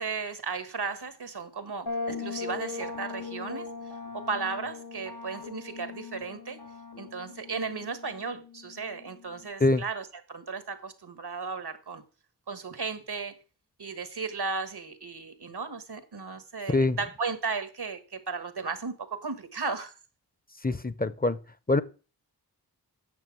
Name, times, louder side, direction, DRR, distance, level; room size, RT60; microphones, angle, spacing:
voice 1, 0.0-3.7 4.1-6.6 7.0-12.0 12.5-13.3 13.8-19.9, right 4 dB, 85° right, 1.5 m, -35 dB
sound 1, 1.9-9.5, left 4 dB, 85° left, 3.5 m, -39 dB
voice 2, 20.6-21.4 21.7-21.8, left 2 dB, 25° left, 0.6 m, -24 dB
9.3 x 6.7 x 6.1 m
wide cardioid pair, 50°, 38 cm